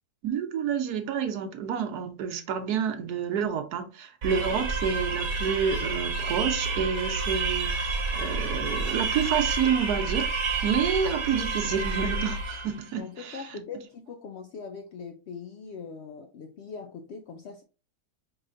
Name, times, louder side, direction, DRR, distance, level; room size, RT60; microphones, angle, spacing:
voice 1, 0.2-10.3 10.6-13.4, right 7 dB, 75° right, 1.2 m, -29 dB
voice 2, 4.2-4.6 13.0-17.6, left 5 dB, 85° left, 0.5 m, -41 dB
sound 1, 4.2-12.8, right 3 dB, 50° right, 1.0 m, -29 dB
4.9 x 3.1 x 2.5 m
omnidirectional pair, 1.7 m